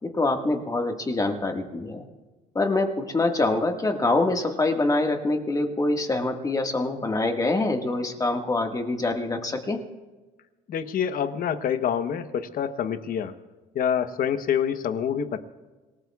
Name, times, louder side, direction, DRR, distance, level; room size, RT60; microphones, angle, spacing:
voice 1, 0.0-2.0 2.5-9.8, left 2 dB, 20° left, 3 dB, 1.7 m, -25 dB
voice 2, 10.7-13.3 13.7-15.4, left 8 dB, 55° left, 10 dB, 1.0 m, -26 dB
26.5 x 19.0 x 2.4 m, 1.2 s
cardioid pair, 110°, 17 cm